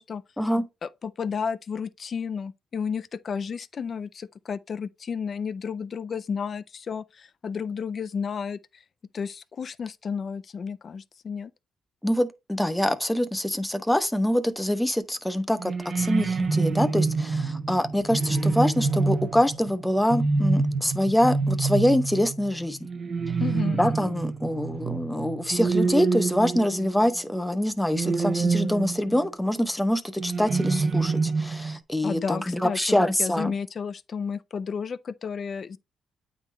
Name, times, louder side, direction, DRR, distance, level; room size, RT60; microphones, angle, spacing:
voice 1, 0.8-8.8 9.1-11.5 23.4-23.8 32.0-35.8, left 6 dB, 45° left, 0.4 m, -32 dB
voice 2, 12.0-22.8 23.8-33.5, left 1 dB, 5° left, 0.7 m, -25 dB
sound 1, 15.6-27.2 27.9-29.3 30.2-31.8, right 4 dB, 45° right, 0.7 m, -26 dB
8.8 x 3.8 x 3.0 m
cardioid pair, 90°, 0 cm